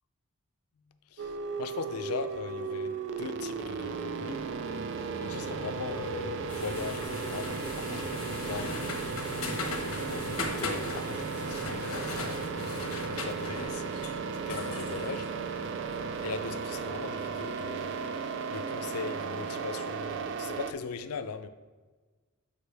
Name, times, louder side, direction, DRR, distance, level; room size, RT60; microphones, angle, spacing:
voice 1, 1.1-4.5 5.2-9.0 9.7-13.8 14.5-15.3 16.2-17.9 18.5-21.5, left 5 dB, 90° left, 0.5 m, -39 dB
sound 1, 1.2-20.7, right 5 dB, 55° right, 0.4 m, -35 dB
sound 2, 6.5-16.0, left 3 dB, 75° left, 1.2 m, -39 dB
8.3 x 5.0 x 3.4 m
head